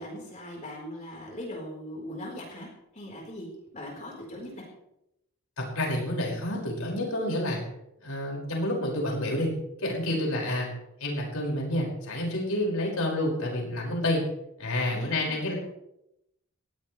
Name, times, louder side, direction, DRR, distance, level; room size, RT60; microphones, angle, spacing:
voice 1, 0.0-3.5 3.7-4.6 10.1-10.2 14.9-15.5, left 1 dB, 35° left, -2 dB, 4.2 m, -40 dB
voice 2, 5.6-7.6 8.0-9.5 9.8-10.7 11.0-14.2 14.6-15.5, left 1 dB, 75° left, -1 dB, 5.6 m, -29 dB
20.0 x 16.0 x 3.3 m, 0.83 s
head